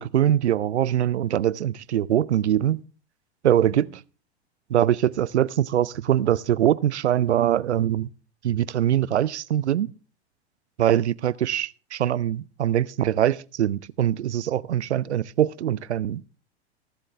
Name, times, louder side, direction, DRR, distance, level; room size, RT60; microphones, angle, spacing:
voice 1, 0.0-2.8 3.4-4.0 4.7-8.1 8.4-9.9 10.8-16.3, right 11 dB, 85° right, 0.5 m, -23 dB
21.5 x 7.6 x 3.4 m
hypercardioid pair, 95°, 33 cm